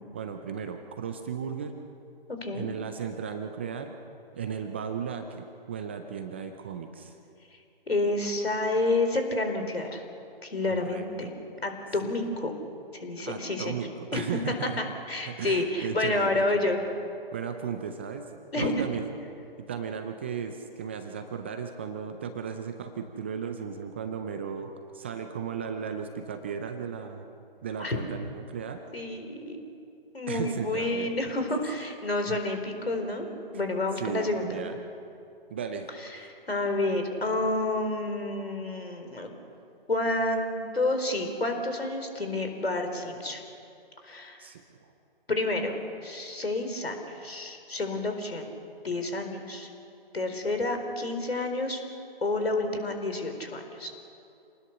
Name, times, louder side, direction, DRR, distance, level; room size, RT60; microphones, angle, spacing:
voice 1, 0.1-1.8 2.5-4.0 4.3-7.2 10.7-11.3 12.0-12.3 13.2-14.8 15.3-16.6 17.3-18.3 18.6-19.1 19.7-27.2 27.6-28.8 30.3-31.1 32.3-32.4 34.0-34.8 35.5-35.9 44.4-44.9, right 7 dB, 10° right, 6 dB, 0.4 m, -35 dB
voice 2, 2.3-2.7 7.9-10.0 10.4-11.3 11.6-12.5 13.0-16.8 18.5-18.9 27.8-28.0 28.9-29.6 30.1-34.6 36.1-39.3 39.9-43.4 44.0-44.4 45.3-48.5 48.8-49.7 50.1-51.8 52.2-53.9, left 2 dB, 80° left, 6 dB, 4.3 m, -29 dB
27.5 x 19.5 x 6.7 m, 2.7 s
figure-of-eight pair, 140°, 30 cm